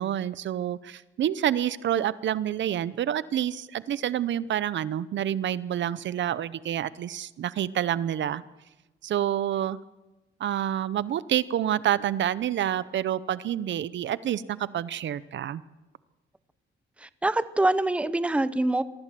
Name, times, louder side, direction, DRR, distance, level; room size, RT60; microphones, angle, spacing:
voice 1, 0.0-8.4 9.0-9.8 10.4-15.6, right 10 dB, 65° right, 0.7 m, -28 dB
voice 2, 17.0-18.8, right 2 dB, 5° right, 0.7 m, -25 dB
23.0 x 15.5 x 7.6 m
cardioid pair, 140°, 20 cm